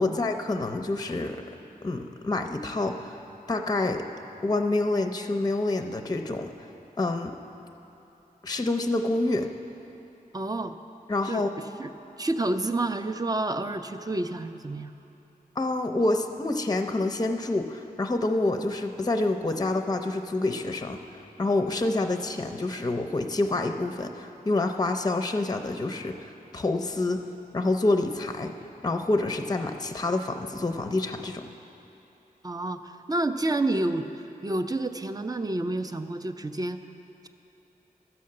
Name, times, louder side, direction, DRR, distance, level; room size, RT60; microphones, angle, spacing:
voice 1, 0.0-1.4 1.8-3.2 3.5-4.0 4.4-6.5 7.0-7.4 8.4-9.5 11.1-11.5 15.6-21.0 21.4-27.3 27.5-28.5 28.8-31.5, left 2 dB, 25° left, 5 dB, 0.5 m, -27 dB
voice 2, 10.3-10.8 11.3-11.4 11.8-11.9 12.2-14.9 32.4-36.8, right 2 dB, 25° right, 8 dB, 0.5 m, -29 dB
13.0 x 5.7 x 7.5 m, 2.9 s
wide cardioid pair, 90°, 15 cm